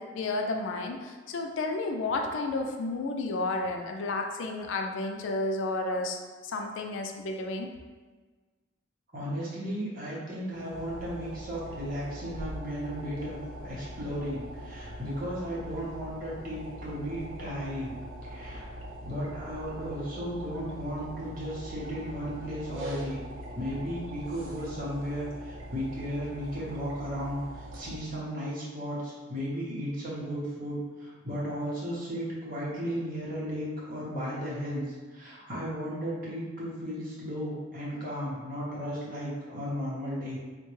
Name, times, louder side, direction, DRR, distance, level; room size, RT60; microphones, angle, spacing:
voice 1, 0.0-6.2 6.4-7.7, left 2 dB, 75° left, 3 dB, 0.4 m, -31 dB
voice 2, 9.1-17.9 18.2-18.7 19.0-23.2 23.5-27.4 27.7-40.4, equal, 45° right, -7 dB, 0.9 m, -35 dB
sound 1, 10.5-28.0, equal, 75° right, 0.6 m, -42 dB
3.6 x 2.2 x 3.0 m, 1.4 s
head